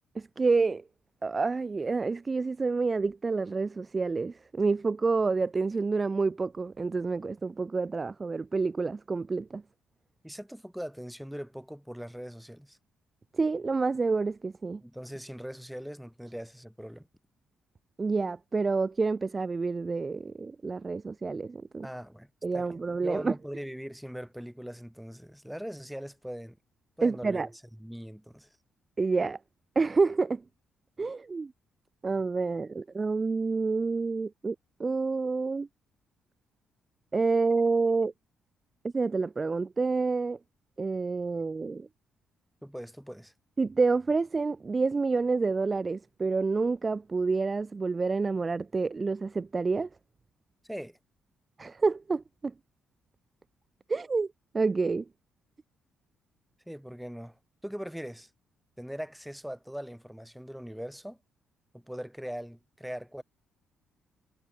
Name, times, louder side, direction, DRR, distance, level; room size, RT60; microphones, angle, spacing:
voice 1, 0.1-0.8 1.2-9.6 13.3-14.8 18.0-21.9 22.4-23.3 27.0-27.5 29.0-29.4 29.8-30.4 31.0-31.5 32.0-35.7 37.1-38.1 38.9-40.4 40.8-41.9 43.6-49.9 51.6-52.5 53.9-54.3 54.5-55.0, right 4 dB, 30° right, 0.8 m, -28 dB
voice 2, 10.2-12.8 14.8-17.1 21.8-22.3 22.5-22.8 23.0-26.6 27.0-27.4 27.8-28.5 42.6-43.3 50.6-51.0 56.7-57.4 57.6-58.3 58.8-61.2 61.7-63.2, equal, ahead, 1.7 m, -40 dB
cardioid pair, 90°, 0 cm